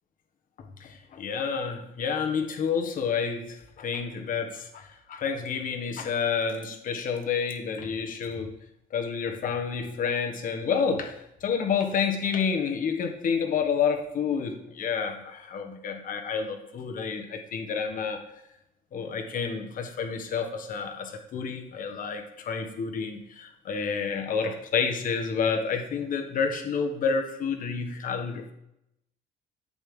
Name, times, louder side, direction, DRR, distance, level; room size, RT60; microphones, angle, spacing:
voice 1, 0.8-8.5 8.9-11.2 11.4-18.2 18.9-28.5, left 6 dB, 55° left, 4 dB, 1.5 m, -29 dB
11.0 x 8.1 x 3.8 m, 0.84 s
cardioid pair, 110°, 17 cm